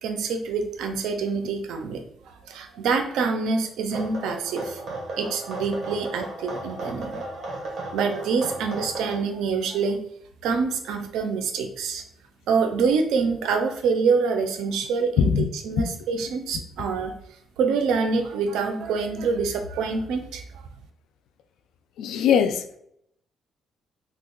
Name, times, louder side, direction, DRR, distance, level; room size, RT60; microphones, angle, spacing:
voice 1, 0.0-4.8 5.2-7.2 7.9-10.0 10.4-12.0 12.5-17.2 17.6-20.6, right 5 dB, 85° right, 0.5 m, -26 dB
sound 1, 3.9-9.2, right 2 dB, 55° right, 1.0 m, -34 dB
voice 2, 15.2-15.5 15.8-15.9 22.0-22.8, left 8 dB, 85° left, 0.3 m, -21 dB
2.9 x 2.1 x 3.7 m
cardioid pair, 90°, 0 cm